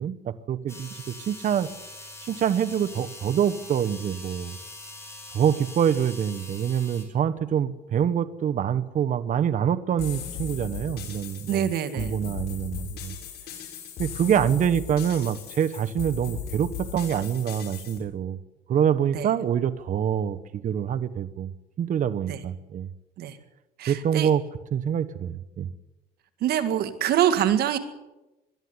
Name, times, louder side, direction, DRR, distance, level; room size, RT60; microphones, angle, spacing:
voice 1, 0.0-1.7 2.2-4.6 5.3-11.7 11.9-13.1 14.0-18.4 18.7-21.5 21.8-22.9 23.9-24.4 24.7-25.7, right 9 dB, 50° right, 11 dB, 1.1 m, -25 dB
sound 1, 0.7-7.1, left 2 dB, 15° left, 5.9 m, -43 dB
sound 2, 10.0-18.0, left 8 dB, 75° left, 5.9 m, -37 dB
voice 2, 11.5-12.2 19.1-19.3 22.3-22.4 23.2-23.4 23.8-24.3 26.4-27.8, right 10 dB, 70° right, 10 dB, 2.0 m, -25 dB
21.5 x 13.0 x 9.7 m, 1.0 s
cardioid pair, 110°, 17 cm